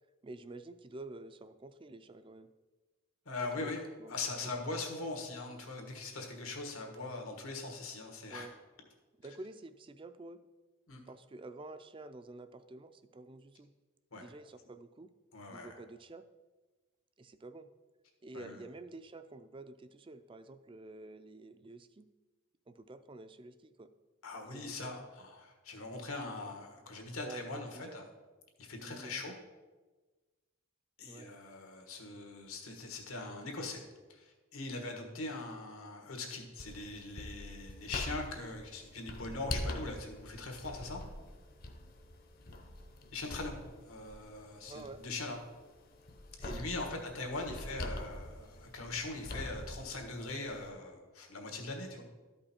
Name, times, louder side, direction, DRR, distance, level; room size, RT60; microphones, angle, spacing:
voice 1, 0.2-2.5 3.4-3.7 4.0-4.1 4.4-4.5 8.3-8.5 9.2-10.4 11.1-13.7 14.1-15.1 15.5-16.2 17.2-17.7 18.2-22.1 22.7-23.9 24.4-25.0 27.2-28.0 28.8-29.3 31.1-31.3 44.7-45.0 46.4-47.0 47.3-47.9, right 2 dB, 25° right, 11 dB, 0.3 m, -49 dB
voice 2, 3.2-8.5 10.9-11.0 14.1-14.3 15.3-15.7 18.3-18.6 24.2-28.0 28.6-29.3 31.0-33.8 34.1-41.0 43.1-45.4 46.4-52.0, left 3 dB, 85° left, 2 dB, 1.5 m, -41 dB
sound 1, 36.6-50.7, left 1 dB, 45° left, 0.7 m, -45 dB
12.5 x 5.4 x 4.3 m, 1.3 s
head